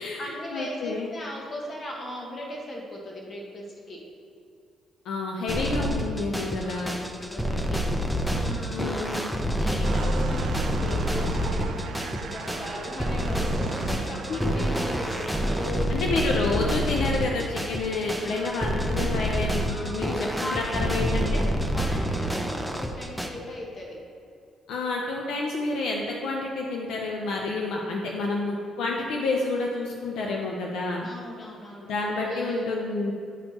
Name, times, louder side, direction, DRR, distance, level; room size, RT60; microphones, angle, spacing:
voice 1, 0.0-4.0 5.4-5.9 6.2-7.8 8.4-9.2 9.4-16.4 18.2-18.6 19.7-21.2 21.7-24.0 28.2-28.4 31.0-32.7, left 1 dB, 40° left, -2 dB, 1.5 m, -38 dB
voice 2, 0.5-1.1 5.1-7.0 8.7-9.4 14.3-14.5 15.9-21.5 24.7-31.1 31.8-33.1, left 3 dB, 80° left, -1 dB, 0.6 m, -29 dB
sound 1, 5.5-23.3, equal, ahead, 0.6 m, -27 dB
sound 2, 9.8-15.7, right 6 dB, 75° right, 0.4 m, -38 dB
8.9 x 4.5 x 2.9 m, 2.4 s
cardioid pair, 90°, 0 cm